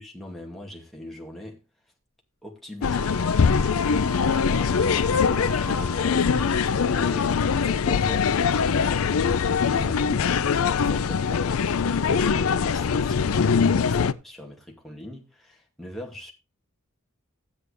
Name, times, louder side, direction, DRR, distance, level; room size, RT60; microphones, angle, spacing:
voice 1, 0.0-1.6 2.4-3.2 4.2-16.3, equal, ahead, 2.3 m, -41 dB
sound 1, 2.8-14.1, left 6 dB, 75° left, 0.5 m, -22 dB
Wind instrument woodwind instrument, 2.9-7.0, right 3 dB, 50° left, 1.9 m, -40 dB
12.5 x 8.5 x 3.4 m
head